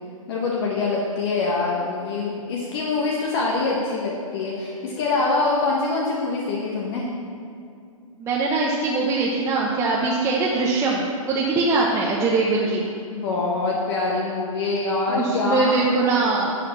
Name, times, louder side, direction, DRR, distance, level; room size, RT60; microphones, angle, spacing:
voice 1, 0.3-7.1 13.1-15.9, left 3 dB, 45° left, -3 dB, 1.5 m, -24 dB
voice 2, 8.2-12.8 15.1-16.6, right 3 dB, 15° right, -4 dB, 1.0 m, -22 dB
11.5 x 5.0 x 7.1 m, 2.4 s
hypercardioid pair, 125°, 18 cm